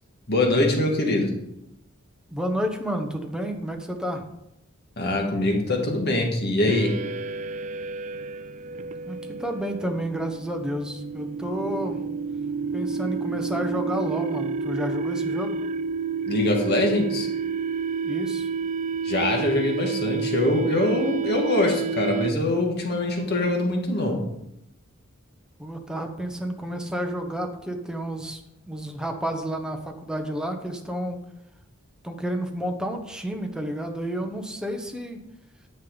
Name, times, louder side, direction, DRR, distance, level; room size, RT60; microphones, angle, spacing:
voice 1, 0.3-1.3 5.0-6.9 16.3-17.3 19.0-24.2, left 2 dB, 50° left, 1 dB, 1.9 m, -23 dB
voice 2, 2.3-4.2 9.0-12.0 12.7-15.6 18.0-18.5 25.6-28.4 28.7-31.2 32.0-35.2, equal, 5° right, 3 dB, 1.0 m, -30 dB
sound 1, 6.7-22.6, right 5 dB, 35° right, 0.4 m, -30 dB
10.5 x 7.4 x 4.0 m, 0.85 s
head